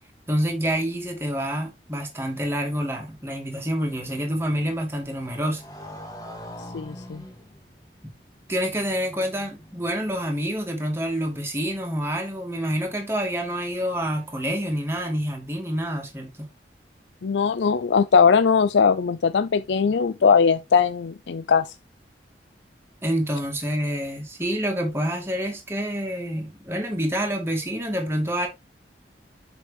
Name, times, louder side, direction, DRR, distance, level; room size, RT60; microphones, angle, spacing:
voice 1, 0.3-5.6 8.0-8.1 8.5-16.5 23.0-28.5, equal, 15° right, 2.5 m, -27 dB
Motorcycle, 3.1-10.6, equal, 20° left, 2.5 m, -45 dB
voice 2, 6.7-7.2 17.2-21.7, left 6 dB, 85° left, 0.5 m, -20 dB
7.6 x 5.9 x 3.5 m
head